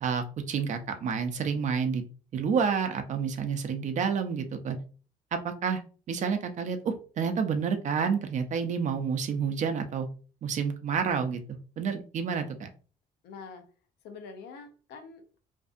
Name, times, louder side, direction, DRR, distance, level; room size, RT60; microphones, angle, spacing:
voice 1, 0.0-2.1 2.3-4.8 5.3-5.8 6.1-10.1 10.4-11.4 11.8-12.7, right 6 dB, 45° right, 7 dB, 0.5 m, -29 dB
voice 2, 13.2-13.6 14.0-15.4, left 5 dB, 85° left, 6 dB, 0.6 m, -45 dB
2.6 x 2.3 x 2.5 m, 0.38 s
cardioid pair, 110°, 17 cm